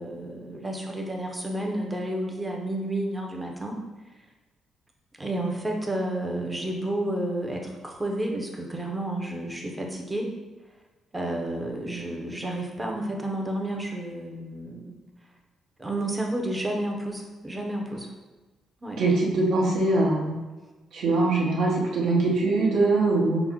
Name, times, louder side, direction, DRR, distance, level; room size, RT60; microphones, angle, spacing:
voice 1, 0.0-3.8 5.2-10.3 11.1-14.9 15.8-18.1 18.8-19.0, right 1 dB, 10° right, 0 dB, 0.5 m, -31 dB
voice 2, 19.0-20.3 20.9-23.4, right 2 dB, 75° right, -3 dB, 1.0 m, -22 dB
5.9 x 2.0 x 3.5 m, 1.2 s
cardioid pair, 180°, 0 cm